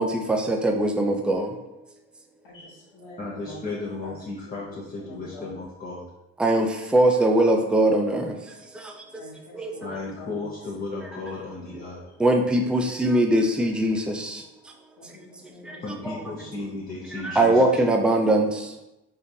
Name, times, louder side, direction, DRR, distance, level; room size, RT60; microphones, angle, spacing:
voice 1, 0.0-1.5 6.4-8.4 8.7-9.2 9.5-9.7 12.2-14.4 15.6-16.2 17.1-18.7, right 1 dB, 5° right, 3 dB, 0.3 m, -22 dB
voice 2, 2.4-5.6 9.1-10.7 12.1-12.2 15.0-16.5, left 1 dB, 85° left, -9 dB, 1.1 m, -45 dB
voice 3, 3.2-6.0 9.8-12.0 15.8-17.6, left 3 dB, 30° left, -5 dB, 0.7 m, -34 dB
3.7 x 2.3 x 2.7 m, 0.93 s
cardioid pair, 90°, 30 cm